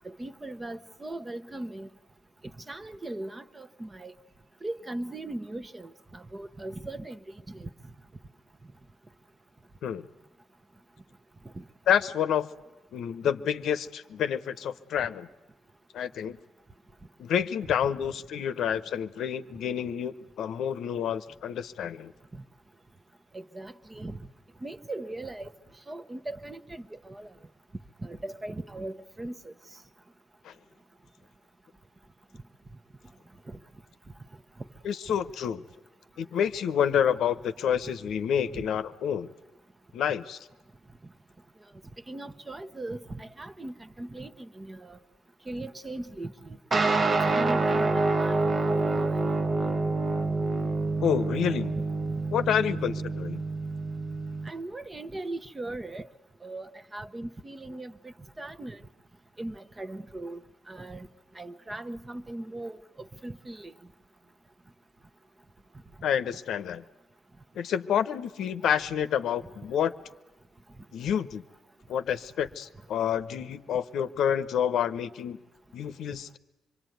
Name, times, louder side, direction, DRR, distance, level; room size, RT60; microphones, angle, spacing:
voice 1, 0.0-1.9 2.7-4.1 4.6-7.2 7.5-7.7 11.5-11.6 23.3-24.2 24.6-25.5 25.9-27.3 28.0-29.5 33.5-33.6 38.5-38.7 42.1-45.0 45.5-46.6 47.1-48.4 48.7-49.3 52.7-52.9 54.4-56.1 56.4-58.8 59.4-60.4 60.7-61.1 61.4-62.8 63.2-63.7, right 2 dB, 20° right, 0.9 m, -39 dB
voice 2, 11.9-12.5 12.9-15.3 15.9-16.4 17.2-22.1 30.4-30.5 34.8-35.6 36.2-39.3 39.9-40.4 51.0-51.7 52.3-53.4 66.0-66.8 67.6-69.9 70.9-71.4 71.9-75.4 75.7-76.4, left 8 dB, 75° left, 0.9 m, -28 dB
sound 1, 46.7-54.5, right 3 dB, 35° right, 1.2 m, -27 dB
25.5 x 23.0 x 9.3 m
cardioid pair, 90°, 0 cm